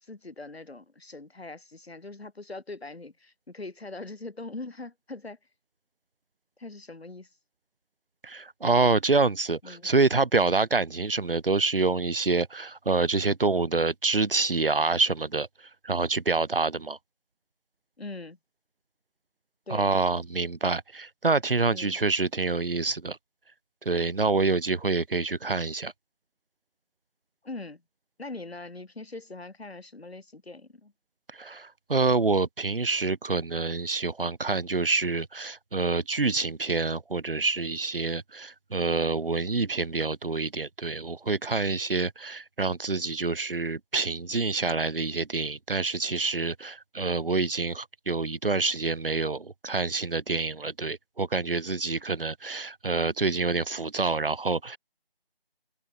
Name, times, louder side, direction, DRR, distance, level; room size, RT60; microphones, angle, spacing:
voice 1, 0.0-5.4 6.6-7.3 9.6-9.9 18.0-18.4 19.7-19.9 21.7-22.0 27.4-27.8 28.2-30.9, left 2 dB, 85° left, 1.8 m, -41 dB
voice 2, 8.2-17.0 19.7-23.2 23.8-25.9 31.3-54.8, right 3 dB, 65° right, 1.0 m, -27 dB
figure-of-eight pair, 170°, 30 cm